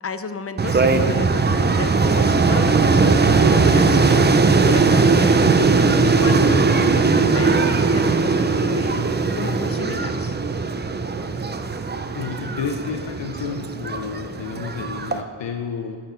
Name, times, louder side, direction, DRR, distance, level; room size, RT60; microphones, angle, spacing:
voice 1, 0.0-4.3 4.6-5.7 6.0-9.1 9.3-10.4, left 4 dB, 35° left, 10 dB, 0.5 m, -32 dB
sound 1, 0.6-15.2, right 4 dB, 25° right, 0.4 m, -19 dB
voice 2, 12.1-16.0, left 6 dB, 85° left, 4 dB, 0.6 m, -30 dB
11.5 x 5.9 x 4.4 m, 2.2 s
wide cardioid pair, 105°, 43 cm